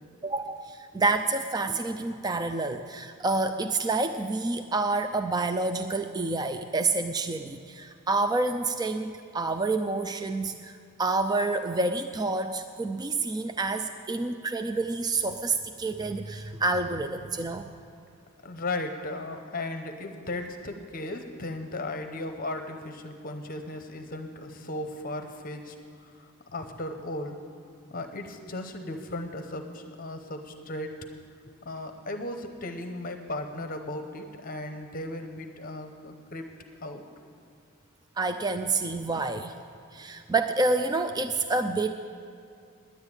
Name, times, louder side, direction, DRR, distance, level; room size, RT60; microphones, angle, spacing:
voice 1, 0.2-17.8 38.2-39.5 39.9-41.9, right 3 dB, 20° right, 8 dB, 0.4 m, -28 dB
voice 2, 18.4-27.4 27.9-30.9 31.6-36.5 36.8-37.0, left 2 dB, 40° left, 6 dB, 0.8 m, -36 dB
10.5 x 9.0 x 9.8 m, 2.5 s
head